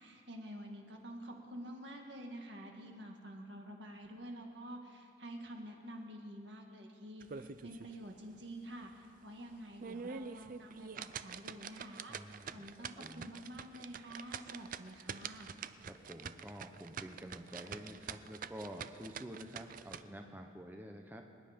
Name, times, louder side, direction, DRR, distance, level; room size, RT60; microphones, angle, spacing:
voice 1, 0.0-15.5, right 1 dB, 60° right, 2 dB, 1.9 m, -49 dB
sound 1, 7.2-7.9 8.3-8.4 8.9-9.0 9.6-20.0, right 6 dB, 45° right, 0.4 m, -46 dB
voice 2, 12.1-12.6 13.0-13.3 15.9-21.2, equal, 10° right, 3 dB, 0.8 m, -49 dB
25.5 x 9.9 x 5.2 m, 2.4 s
head